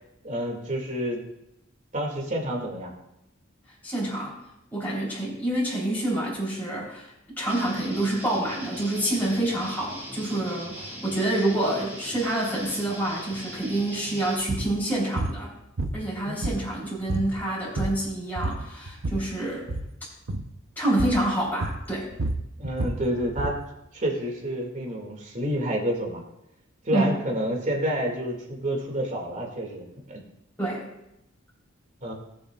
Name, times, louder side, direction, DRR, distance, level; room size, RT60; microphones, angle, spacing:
voice 1, 0.2-1.2 1.9-2.9 16.2-16.4 22.6-23.6 23.9-26.2 26.8-30.2 32.0-32.1, equal, 40° right, 0 dB, 2.3 m, -29 dB
voice 2, 3.8-4.4 4.7-15.5 15.9-19.7 20.8-22.1 26.9-27.2 30.6-30.8, right 1 dB, 10° left, -7 dB, 3.8 m, -27 dB
Guitar, 7.5-14.4, right 1 dB, 10° right, 3.8 m, -40 dB
sound 1, 14.4-14.7 15.2-15.4 15.8-16.8 17.1-17.3 17.6-18.1 18.4-19.3 19.6-19.9 20.3-20.5 21.0-21.2 21.6-23.6, right 2 dB, 70° right, 0.8 m, -29 dB
19.0 x 7.4 x 2.4 m, 0.86 s
head